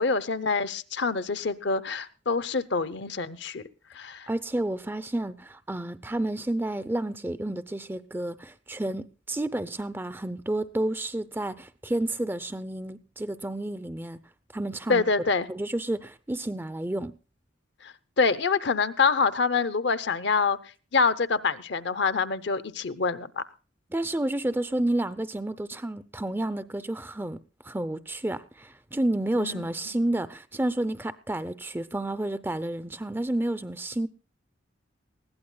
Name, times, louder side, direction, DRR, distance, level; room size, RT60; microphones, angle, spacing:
voice 1, 0.0-3.6 3.9-4.3 14.9-15.5 17.8-20.6 20.9-23.4 29.4-29.7, left 4 dB, 60° left, 0.8 m, -26 dB
voice 2, 4.3-14.2 14.5-15.0 15.5-17.1 23.9-27.4 27.6-34.1, right 1 dB, 10° right, 0.5 m, -30 dB
20.5 x 16.0 x 2.2 m
head